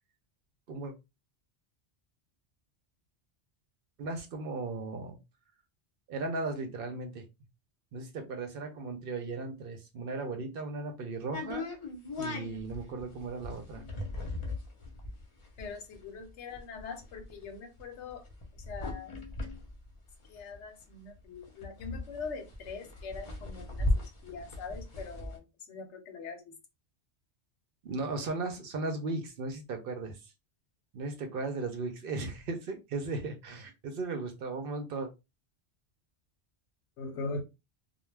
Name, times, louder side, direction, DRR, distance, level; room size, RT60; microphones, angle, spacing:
voice 1, 4.0-5.2 6.1-7.3 7.9-11.7 12.2-13.9 27.8-30.3 30.9-35.1, right 3 dB, 60° right, 0.7 m, -36 dB
sound 1, 11.3-20.8 21.1-21.2 21.4-25.4, left 2 dB, 35° left, 0.6 m, -37 dB
voice 2, 15.6-18.3 18.7-19.1 20.3-26.5 37.0-37.4, left 4 dB, 90° left, 1.0 m, -42 dB
2.2 x 2.1 x 3.2 m
omnidirectional pair, 1.2 m